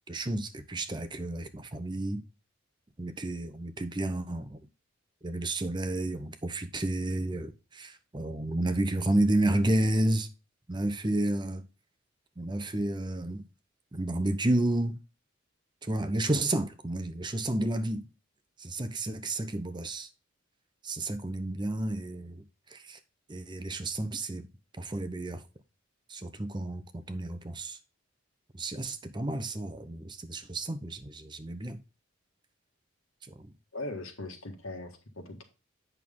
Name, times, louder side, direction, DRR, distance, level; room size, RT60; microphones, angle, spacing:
voice 1, 0.1-2.2 3.0-4.6 5.2-10.3 10.7-11.6 12.4-13.4 13.9-15.0 15.8-18.1 18.6-20.1 20.8-22.4 22.7-23.0 23.3-24.5 24.8-25.4 26.1-27.8 28.5-31.8 33.3-33.5, right 1 dB, 20° right, 0.7 m, -31 dB
voice 2, 33.7-35.4, left 2 dB, 80° left, 1.8 m, -39 dB
8.2 x 6.2 x 3.6 m
head